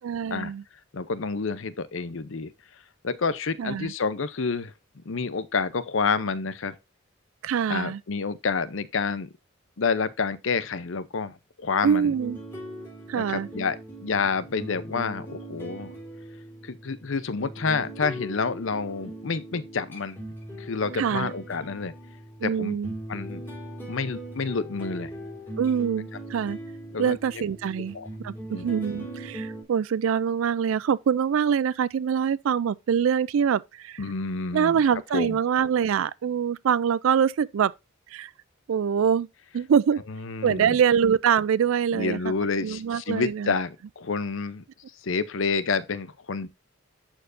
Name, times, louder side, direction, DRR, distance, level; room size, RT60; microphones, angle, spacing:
voice 1, 0.0-0.6 3.6-3.9 7.4-8.0 11.8-12.4 13.1-13.5 21.0-21.3 22.4-22.9 25.6-26.6 27.0-28.0 28.2-34.0 34.5-37.7 38.1-38.3 38.7-39.3 39.5-40.0 40.4-42.3 42.6-43.5, right 7 dB, 70° right, 0.3 m, -24 dB
voice 2, 0.9-2.5 3.0-4.7 5.1-6.7 7.7-9.3 9.8-12.1 13.2-15.9 16.6-20.2 20.6-21.9 22.4-22.8 23.1-23.4 23.9-25.1 26.9-27.2 27.9-28.1 28.5-28.7 34.0-34.8 35.1-35.4 40.1-40.8 41.9-44.6 45.0-46.5, left 4 dB, 65° left, 0.7 m, -29 dB
sound 1, 12.0-29.6, right 1 dB, 10° left, 3.3 m, -40 dB
11.5 x 4.5 x 2.6 m
head